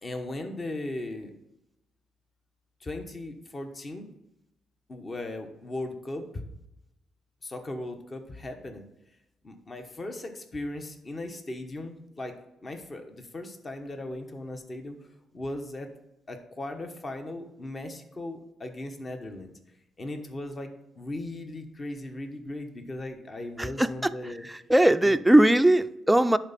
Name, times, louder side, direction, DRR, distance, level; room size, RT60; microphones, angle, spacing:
voice 1, 0.0-1.3 2.8-4.1 4.9-6.4 7.4-8.9 9.4-15.0 15.3-15.9 16.3-19.5 20.0-24.5 25.0-25.1, left 1 dB, 30° left, 6 dB, 1.1 m, -37 dB
voice 2, 24.7-26.4, right 1 dB, 5° right, 10 dB, 0.4 m, -19 dB
11.0 x 4.4 x 4.1 m, 0.89 s
cardioid pair, 90°, 0 cm